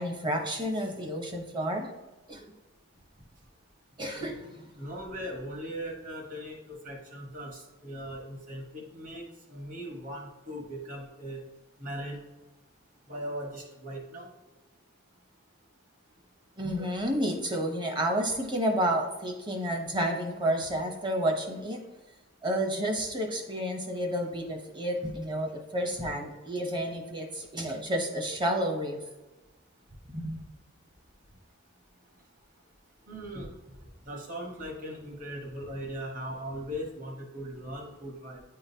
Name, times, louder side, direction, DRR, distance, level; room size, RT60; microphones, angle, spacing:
voice 1, 0.0-1.9 2.3-2.5 4.0-4.6 16.6-21.8 22.4-29.0 30.1-30.4, right 1 dB, 20° right, 3 dB, 0.7 m, -30 dB
voice 2, 4.8-11.4 11.8-12.2 13.1-14.3 33.1-33.5 34.1-38.4, equal, 35° right, 0 dB, 1.1 m, -39 dB
9.4 x 3.8 x 2.7 m, 1.1 s
head